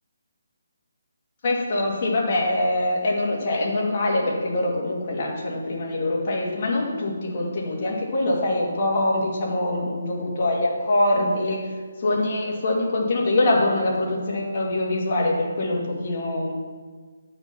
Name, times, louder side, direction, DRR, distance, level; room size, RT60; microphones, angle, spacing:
voice 1, 1.4-11.6 12.0-16.5, left 1 dB, 35° left, -3 dB, 2.0 m, -24 dB
8.8 x 6.0 x 5.8 m, 1.5 s
hypercardioid pair, 170°, 0 cm